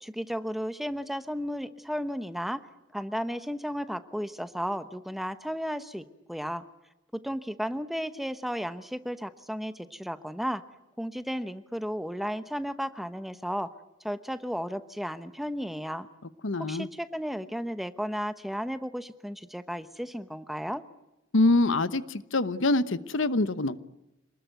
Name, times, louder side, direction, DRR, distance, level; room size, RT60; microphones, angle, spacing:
voice 1, 0.0-2.6 2.9-6.6 7.1-10.6 11.0-13.7 14.0-16.1 16.7-20.8, equal, ahead, 11 dB, 1.0 m, -34 dB
voice 2, 16.4-16.9 21.3-23.8, left 2 dB, 70° left, 14 dB, 1.0 m, -25 dB
27.5 x 20.0 x 9.3 m, 0.95 s
head